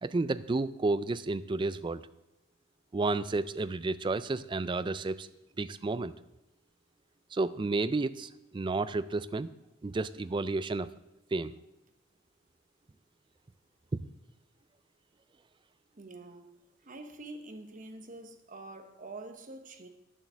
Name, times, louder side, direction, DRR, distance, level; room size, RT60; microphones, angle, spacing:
voice 1, 0.0-2.0 2.9-5.3 5.6-6.1 7.3-9.5 9.8-10.9 11.3-11.5 13.9-14.0, right 3 dB, 25° right, 14 dB, 0.3 m, -31 dB
voice 2, 16.0-16.5 16.8-19.9, right 2 dB, 40° right, 7 dB, 1.0 m, -46 dB
10.5 x 7.4 x 6.2 m, 0.91 s
head